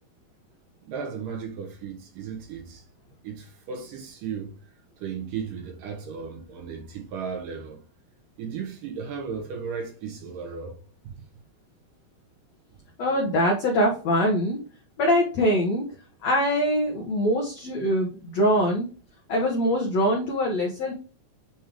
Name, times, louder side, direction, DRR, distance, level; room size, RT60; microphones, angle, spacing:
voice 1, 0.8-2.8 3.2-4.7 5.0-7.8 8.4-10.8 11.0-11.3, right 6 dB, 65° right, 2.5 m, -35 dB
voice 2, 13.0-14.6 15.0-15.8 16.2-18.9 19.3-20.9, equal, 70° left, 1.6 m, -23 dB
8.8 x 3.2 x 3.6 m
omnidirectional pair, 4.6 m